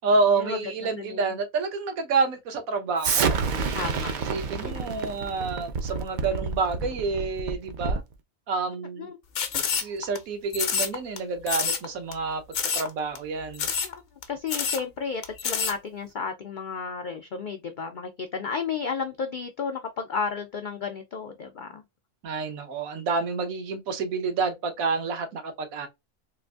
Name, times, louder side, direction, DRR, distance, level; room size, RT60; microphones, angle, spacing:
voice 1, 0.0-3.4 4.2-8.0 8.5-9.1 9.7-12.4 12.7-13.7 22.2-25.9, right 4 dB, 80° right, 1.3 m, -28 dB
voice 2, 1.0-1.3 3.7-4.2 4.6-5.0 9.0-9.2 13.8-14.0 14.3-21.8, left 5 dB, 75° left, 0.4 m, -33 dB
Explosion, 3.0-8.1, right 5 dB, 60° right, 0.5 m, -28 dB
sound 1, 9.3-10.2 10.5-11.2 11.5-11.8 12.1-12.2 12.5-12.9 13.1-13.2 13.5-13.9 14.2-14.3 14.5-14.8 15.2-15.7, left 6 dB, 55° left, 0.8 m, -27 dB
3.8 x 2.5 x 2.3 m
omnidirectional pair, 1.4 m